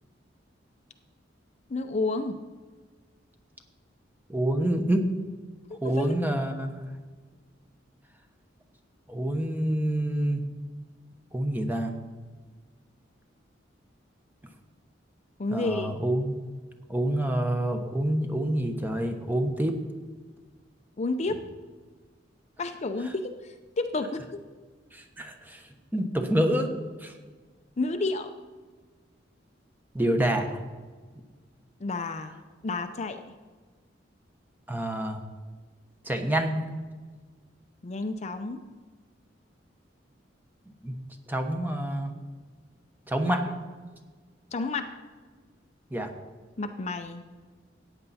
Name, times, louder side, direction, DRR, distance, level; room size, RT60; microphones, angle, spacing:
voice 1, 1.7-2.4 5.7-6.0 15.4-15.9 21.0-21.5 22.6-24.4 27.8-28.3 31.8-32.3 32.6-33.2 37.8-38.7 44.5-45.0 46.6-47.3, left 3 dB, 35° left, 7 dB, 0.5 m, -31 dB
voice 2, 4.3-5.1 5.8-6.8 9.1-10.4 11.3-11.9 15.5-16.4 16.9-19.8 24.9-25.6 25.9-26.7 27.0-27.1 29.9-30.5 34.7-35.2 36.0-36.6 40.8-41.0 41.3-42.1 43.1-43.5 45.9-46.1, right 1 dB, 10° right, 4 dB, 1.0 m, -27 dB
14.0 x 9.0 x 4.2 m, 1.4 s
head